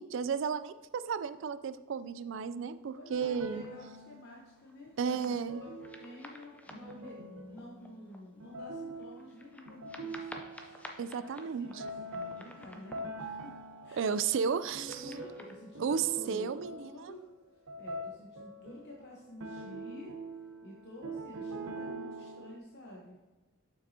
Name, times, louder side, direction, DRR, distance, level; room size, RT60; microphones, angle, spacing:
voice 1, 0.0-3.6 5.0-5.6 11.0-11.7 14.0-15.1 15.8-17.1, right 6 dB, 60° right, 13 dB, 0.3 m, -33 dB
voice 2, 2.9-5.7 6.0-10.2 10.5-10.9 11.2-13.6 13.8-14.0 14.4-17.3 17.8-20.1 20.6-23.2, left 1 dB, 50° left, -3 dB, 0.9 m, -51 dB
sound 1, 3.1-4.5 5.3-11.1 11.6-19.0 19.4-22.6, right 2 dB, 85° right, 0.7 m, -44 dB
sound 2, 3.2-3.7 4.4-5.5 5.8-8.3 8.7-8.8 9.0-13.9 14.3-15.6, left 1 dB, 5° left, 0.5 m, -52 dB
6.9 x 6.0 x 2.8 m, 1.2 s
head